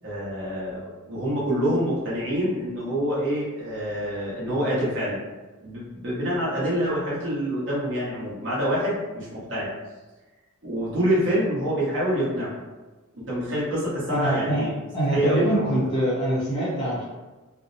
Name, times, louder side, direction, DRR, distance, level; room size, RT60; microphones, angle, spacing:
voice 1, 0.0-5.2 5.6-9.7 10.6-12.6 13.1-14.7 15.1-15.8, equal, 55° right, -7 dB, 0.9 m, -26 dB
voice 2, 14.1-14.6 14.9-17.0, right 1 dB, 20° left, -9 dB, 0.5 m, -24 dB
2.5 x 2.0 x 2.5 m, 1.2 s
head